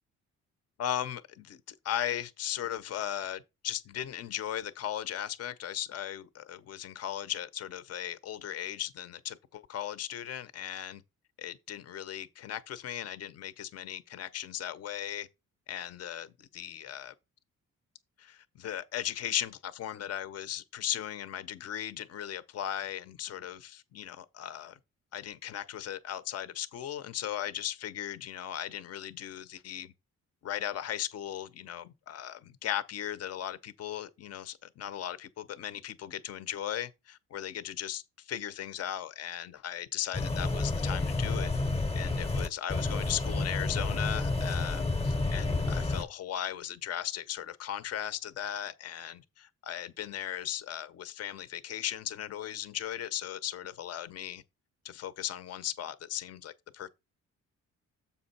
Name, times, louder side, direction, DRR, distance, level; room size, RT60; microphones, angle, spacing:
voice 1, 0.8-11.0 11.4-15.3 15.7-17.1 18.2-24.8 25.1-29.9 30.4-41.5 41.9-54.4 54.8-56.9, left 11 dB, 55° left, 0.7 m, -37 dB
sound 1, 40.1-46.0, left 3 dB, 20° left, 0.8 m, -30 dB
7.3 x 5.2 x 4.2 m
cardioid pair, 115°, 29 cm